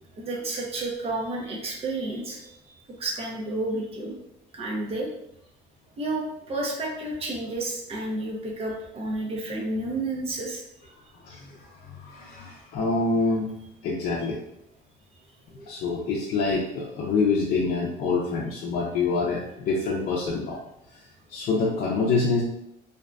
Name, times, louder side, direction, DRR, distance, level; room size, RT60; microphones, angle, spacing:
voice 1, 0.1-4.2 4.5-5.1 6.0-10.9 15.5-15.7, right 2 dB, 35° right, -1 dB, 0.7 m, -31 dB
voice 2, 11.2-13.5 13.8-14.4 15.7-20.6 21.3-22.4, left 4 dB, 65° left, -5 dB, 0.6 m, -26 dB
2.6 x 2.2 x 2.4 m, 0.77 s
cardioid pair, 110°, 17 cm